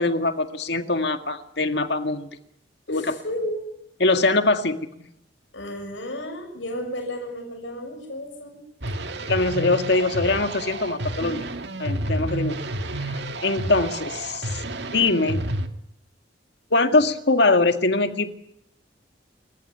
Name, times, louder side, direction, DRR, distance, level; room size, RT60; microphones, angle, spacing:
voice 1, 0.0-2.3 2.9-3.1 4.0-4.8 9.3-11.5 11.8-12.6 13.4-14.6 14.9-15.4 16.7-18.3, left 3 dB, 60° left, 8 dB, 2.0 m, -22 dB
voice 2, 2.9-3.7 5.5-8.6, equal, 75° left, 3 dB, 6.6 m, -33 dB
sound 1, 8.8-15.7, right 1 dB, 60° right, 2.1 m, -30 dB
30.0 x 14.5 x 9.4 m, 0.78 s
head